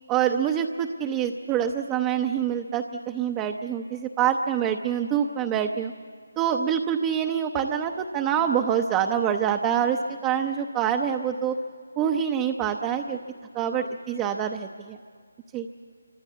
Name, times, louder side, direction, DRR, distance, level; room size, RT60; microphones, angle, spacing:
voice 1, 0.1-5.9 6.4-11.6 12.0-13.2 13.5-15.0 15.5-15.7, right 8 dB, 15° right, 4 dB, 0.7 m, -26 dB
26.0 x 25.0 x 8.3 m, 2.1 s
figure-of-eight pair, 165°, 0 cm